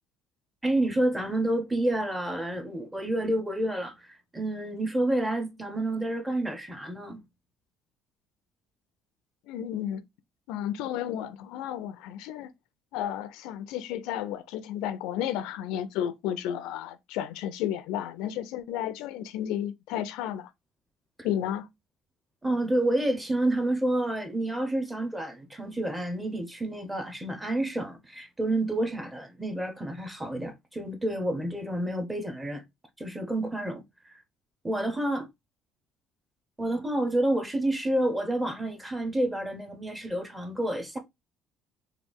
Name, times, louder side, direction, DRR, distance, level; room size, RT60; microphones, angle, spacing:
voice 1, 0.6-7.2 22.4-32.6 33.0-34.1 34.6-35.3 36.6-41.0, right 1 dB, 10° right, 0.6 m, -29 dB
voice 2, 9.5-10.0 10.5-12.5 12.9-20.5 21.2-21.7, left 11 dB, 90° left, 0.4 m, -32 dB
3.2 x 2.3 x 3.4 m
cardioid pair, 135°, 0 cm